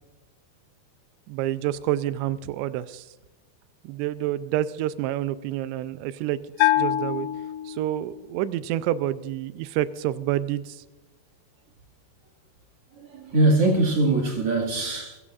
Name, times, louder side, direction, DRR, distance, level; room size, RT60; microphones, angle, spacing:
voice 1, 1.3-3.1 3.9-7.3 7.7-10.8, right 13 dB, 85° right, 2.8 m, -28 dB
Bell, 6.6-8.2, left 14 dB, 90° left, 2.9 m, -25 dB
voice 2, 13.0-15.2, right 2 dB, 45° right, 2.2 m, -22 dB
21.5 x 15.0 x 2.5 m
omnidirectional pair, 5.0 m